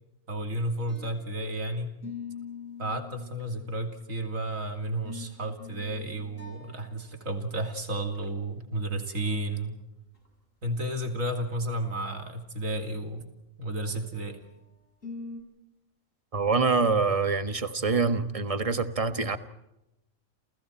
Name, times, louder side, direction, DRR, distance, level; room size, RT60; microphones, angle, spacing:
voice 1, 0.3-2.0 2.8-9.7 10.6-13.3 13.6-14.4, right 1 dB, 85° right, 5 dB, 3.1 m, -32 dB
sound 1, 0.7-1.6 2.0-4.2 4.8-7.3 7.6-7.7 8.0-8.2 9.6-9.7 10.2-10.3 13.8-14.5 15.0-15.4, left 5 dB, 75° left, 6.9 m, -44 dB
voice 2, 16.3-19.4, right 4 dB, 25° right, 10 dB, 1.4 m, -25 dB
29.5 x 29.0 x 4.4 m, 0.90 s
omnidirectional pair, 1.3 m